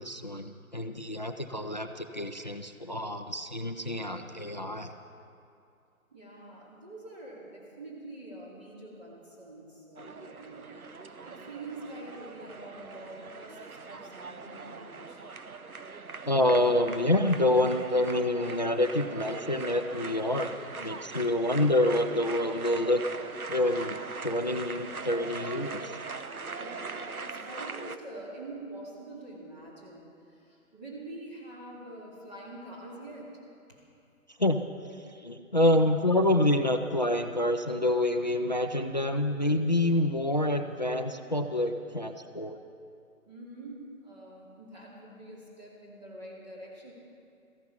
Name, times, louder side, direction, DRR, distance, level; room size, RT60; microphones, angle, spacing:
voice 1, 0.0-4.9 16.3-23.0 23.5-26.0 34.4-34.6 35.1-42.6, left 1 dB, 30° left, 7 dB, 0.5 m, -27 dB
voice 2, 6.1-15.2 26.5-33.4 33.7-33.8 43.3-46.9, right 2 dB, 30° right, -4 dB, 2.6 m, -45 dB
sound 1, 10.0-28.0, right 4 dB, 80° right, 1.0 m, -41 dB
17.0 x 15.0 x 5.7 m, 2.6 s
figure-of-eight pair, 145°, 43 cm